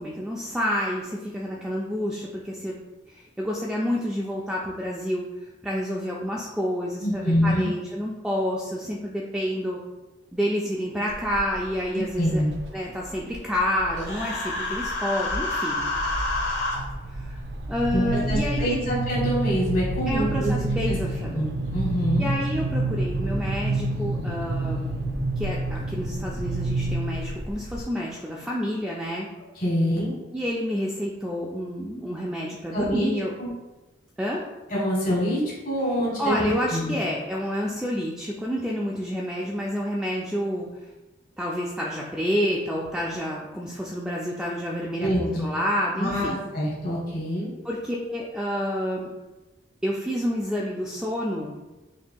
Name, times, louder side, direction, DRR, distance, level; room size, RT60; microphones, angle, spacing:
voice 1, 0.0-2.8 3.1-5.3 5.6-9.8 10.3-12.4 12.7-15.9 17.1-17.4 17.7-18.8 20.1-21.4 22.2-24.9 25.4-29.3 30.3-33.3 34.2-34.5 36.2-40.9 41.4-46.4 47.6-49.1 49.8-51.5, equal, 5° right, -4 dB, 0.3 m, -29 dB
voice 2, 7.0-7.7 12.2-12.5 17.9-20.5 20.9-21.0 21.3-22.3 29.5-30.1 32.7-33.1 33.4-33.5 34.7-37.0 45.0-45.5 46.0-47.5, equal, 50° left, -5 dB, 1.5 m, -25 dB
sound 1, 11.1-11.6 12.1-12.7 13.3-14.2 14.6-14.9 15.3-27.8, right 2 dB, 65° right, 0.5 m, -29 dB
Human voice, 14.0-16.8, left 2 dB, 70° left, 1.3 m, -28 dB
5.9 x 2.7 x 2.2 m, 1.1 s
head